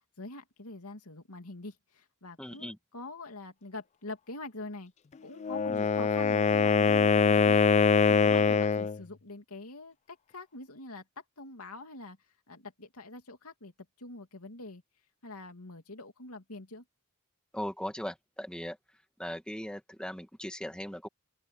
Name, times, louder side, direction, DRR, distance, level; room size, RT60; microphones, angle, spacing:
voice 1, 0.2-4.9 5.2-11.0 11.4-12.2 12.5-13.7 14.0-14.8 15.2-16.8, left 2 dB, 85° left, 2.7 m, -44 dB
voice 2, 2.4-2.8 5.7-5.8 8.3-8.4 17.5-18.8 19.2-21.1, equal, 5° left, 2.2 m, -39 dB
Wind instrument woodwind instrument, 5.4-9.0, left 5 dB, 30° left, 0.3 m, -23 dB
open air
head